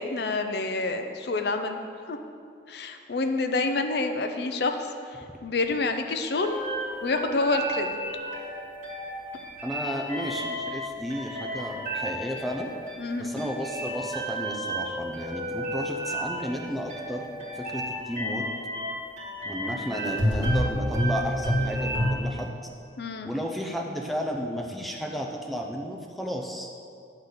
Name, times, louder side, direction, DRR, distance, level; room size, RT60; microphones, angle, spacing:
voice 1, 0.0-1.8 2.1-2.2 2.7-4.9 5.4-6.6 7.0-7.9 13.0-13.5 23.0-23.3, left 3 dB, 60° left, 6 dB, 0.5 m, -28 dB
sound 1, 6.4-22.1, equal, 40° right, 2.2 m, -31 dB
voice 2, 9.6-12.7 13.2-17.3 17.5-18.5 19.4-22.5 23.2-26.7, equal, ahead, 0 dB, 0.5 m, -33 dB
9.9 x 4.0 x 6.7 m, 2.4 s
head